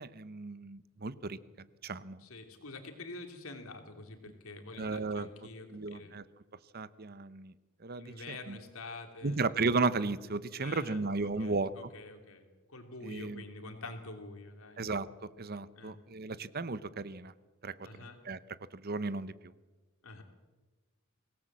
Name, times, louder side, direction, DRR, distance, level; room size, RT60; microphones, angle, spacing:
voice 1, 0.0-2.2 4.8-6.2 6.7-7.5 7.8-8.6 9.2-11.7 13.0-13.4 14.8-17.3 17.6-18.4 18.7-19.5, right 3 dB, 45° right, 16 dB, 0.8 m, -35 dB
voice 2, 2.2-6.1 8.0-9.4 10.6-12.4 12.7-14.8 15.7-16.0 17.8-18.2 20.0-20.2, left 3 dB, 80° left, 5 dB, 3.0 m, -47 dB
24.5 x 17.5 x 7.5 m, 1.2 s
head